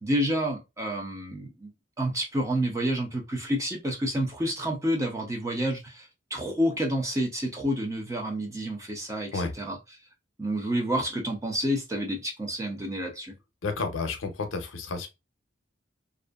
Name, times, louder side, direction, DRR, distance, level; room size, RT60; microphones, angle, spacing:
voice 1, 0.0-1.7 2.0-9.8 10.4-13.3, equal, 15° right, 0.5 m, -29 dB
voice 2, 13.6-15.1, left 3 dB, 85° left, 0.6 m, -31 dB
2.6 x 2.4 x 2.2 m
head